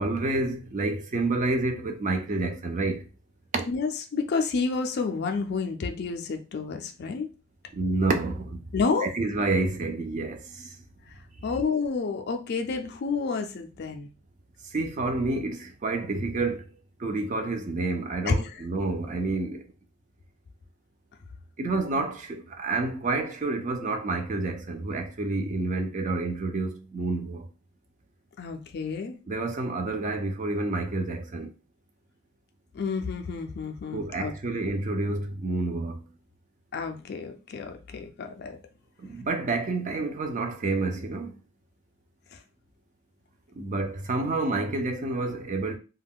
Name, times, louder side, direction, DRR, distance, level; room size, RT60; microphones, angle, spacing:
voice 1, 0.0-3.0 3.5-3.6 7.7-8.6 9.0-10.7 14.7-16.7 17.0-19.6 21.6-27.5 29.3-31.5 33.9-36.0 39.0-41.4 43.6-45.8, right 3 dB, 35° right, 0.4 m, -29 dB
voice 2, 3.7-7.3 8.7-9.1 11.4-14.1 18.3-18.6 28.4-29.1 32.7-34.3 36.7-38.6 42.3-42.4, left 4 dB, 50° left, 0.4 m, -30 dB
2.3 x 2.1 x 3.5 m
head